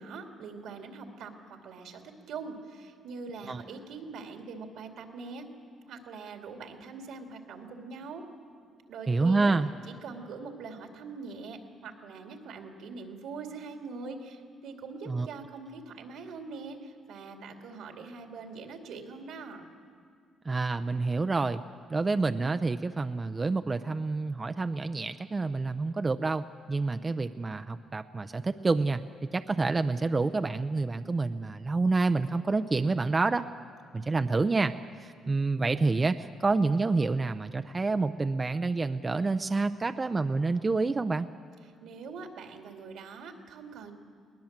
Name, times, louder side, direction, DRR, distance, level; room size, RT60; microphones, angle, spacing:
voice 1, 0.0-5.5 5.9-8.2 8.9-9.6 9.9-19.6 41.8-43.9, right 4 dB, 85° right, 4 dB, 2.4 m, -43 dB
voice 2, 9.1-9.7 15.1-15.3 20.4-21.6 21.9-29.0 29.3-33.5 33.9-34.7 35.0-41.3, right 3 dB, 25° right, 9 dB, 0.6 m, -28 dB
21.5 x 19.5 x 7.4 m, 2.2 s
cardioid pair, 90°, 0 cm